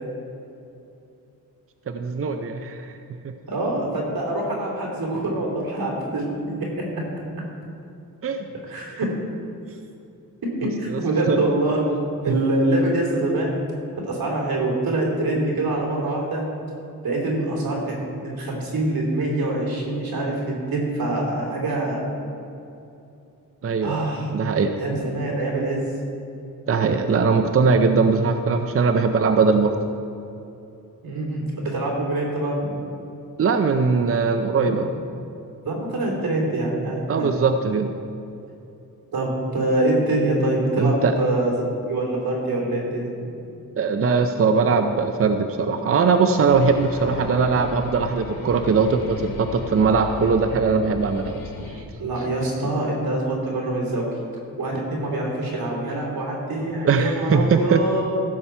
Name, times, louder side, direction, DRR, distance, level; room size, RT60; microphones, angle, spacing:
voice 1, 1.9-2.9 8.2-8.4 10.9-11.0 11.3-11.4 12.3-12.4 23.6-24.8 26.7-29.8 33.4-34.9 37.1-37.9 40.8-41.1 43.8-51.8 56.8-57.8, right 5 dB, 40° right, 6 dB, 0.6 m, -20 dB
voice 2, 3.4-6.3 6.6-7.0 8.7-9.1 10.6-11.8 12.2-13.6 14.0-16.5 17.0-22.0 23.8-24.3 24.7-25.8 31.0-32.8 34.6-34.8 35.6-37.3 39.1-41.5 41.9-43.3 52.0-54.1 54.6-58.2, right 2 dB, 80° right, -2 dB, 3.1 m, -25 dB
sound 1, 46.5-51.8, left 3 dB, 75° left, 1.1 m, -36 dB
15.5 x 7.2 x 4.5 m, 2.7 s
wide cardioid pair, 120°, 36 cm